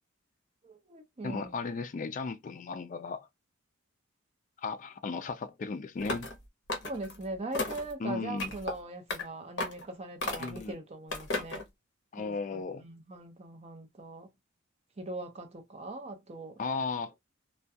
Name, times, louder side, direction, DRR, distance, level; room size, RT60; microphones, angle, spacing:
voice 1, 0.6-1.6 6.8-11.6 12.2-14.3 15.0-16.6, right 2 dB, 30° right, 0.6 m, -41 dB
voice 2, 1.2-3.3 4.6-6.3 8.0-8.5 10.4-10.8 12.1-12.8 16.6-17.1, left 4 dB, 40° left, 0.3 m, -35 dB
sound 1, 6.0-6.4 6.7-7.2 7.5-7.9 8.4-8.7 9.1-9.2 9.6-9.8 10.2-10.6 11.1-11.6, left 2 dB, 60° left, 0.7 m, -34 dB
2.3 x 2.2 x 2.6 m
head